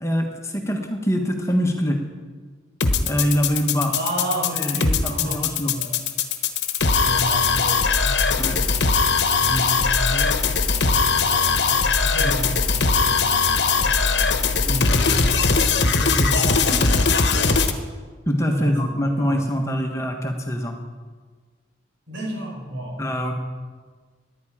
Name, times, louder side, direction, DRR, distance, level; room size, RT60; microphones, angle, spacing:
voice 1, 0.0-2.0 3.1-3.9 4.5-5.7 8.4-8.6 9.5-9.7 18.3-20.8 23.0-23.3, equal, 15° left, 3 dB, 1.3 m, -24 dB
sound 1, 2.8-17.7, left 4 dB, 65° left, 1.1 m, -20 dB
voice 2, 3.9-6.0 7.0-8.9 9.4-15.4 15.8-17.2 18.5-19.5 22.1-23.0, right 1 dB, 85° right, 0 dB, 4.5 m, -31 dB
18.0 x 11.0 x 4.9 m, 1.5 s
head